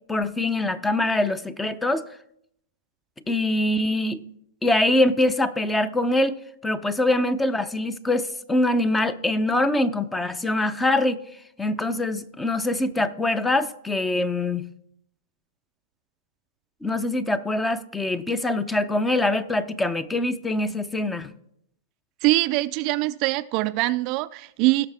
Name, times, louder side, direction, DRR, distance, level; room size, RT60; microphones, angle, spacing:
voice 1, 0.1-2.1 3.3-4.2 4.6-6.3 6.6-11.2 11.6-14.6 16.8-21.3, left 1 dB, 10° left, 0.7 m, -23 dB
voice 2, 22.2-24.9, right 19 dB, 40° right, 0.4 m, -23 dB
17.5 x 6.4 x 3.5 m
hypercardioid pair, 130°, 0 cm